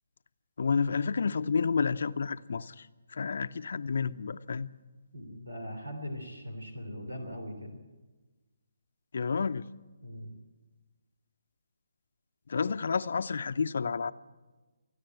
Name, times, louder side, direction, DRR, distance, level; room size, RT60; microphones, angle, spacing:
voice 1, 0.6-4.7 9.1-9.6 12.5-14.1, left 5 dB, 55° left, 14 dB, 0.6 m, -30 dB
voice 2, 5.1-7.8 10.0-10.3, equal, 80° right, 7 dB, 3.1 m, -40 dB
28.5 x 10.0 x 9.0 m, 1.2 s
figure-of-eight pair, 140°, 0 cm